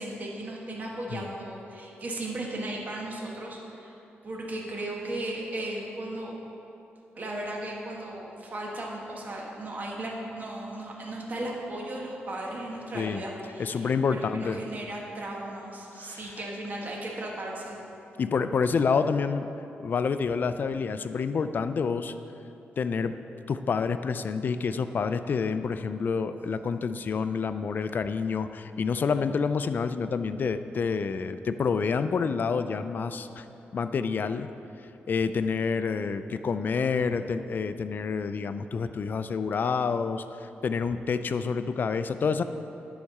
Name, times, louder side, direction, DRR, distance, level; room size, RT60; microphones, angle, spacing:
voice 1, 0.0-4.0 4.2-6.3 7.1-17.8, right 1 dB, 40° right, -2 dB, 1.4 m, -36 dB
voice 2, 13.6-14.6 16.0-16.3 18.2-19.5 19.8-22.2 22.8-23.1 23.5-33.5 33.7-34.5 34.8-42.4, left 5 dB, 50° left, 10 dB, 0.4 m, -28 dB
10.0 x 4.7 x 6.5 m, 3.0 s
wide cardioid pair, 120°, 4 cm